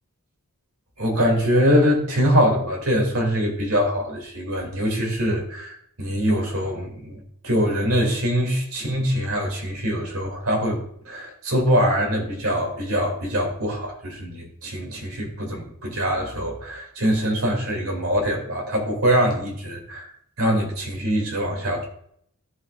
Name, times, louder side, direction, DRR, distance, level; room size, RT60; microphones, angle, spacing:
voice 1, 1.0-20.1 20.4-21.8, equal, 70° right, 1 dB, 2.6 m, -23 dB
16.0 x 5.7 x 2.5 m, 0.68 s
head